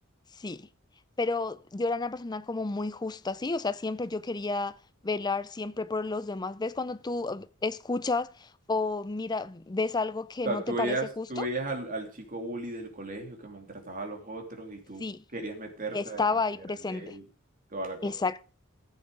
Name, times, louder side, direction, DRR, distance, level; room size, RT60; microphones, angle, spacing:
voice 1, 0.4-0.7 1.2-4.8 5.0-11.5 15.0-15.2 15.9-17.1 18.0-18.4, left 3 dB, 20° left, 0.5 m, -31 dB
voice 2, 10.4-15.1 15.3-17.2 17.7-18.1, right 2 dB, 40° right, 2.9 m, -35 dB
14.5 x 7.7 x 5.0 m
head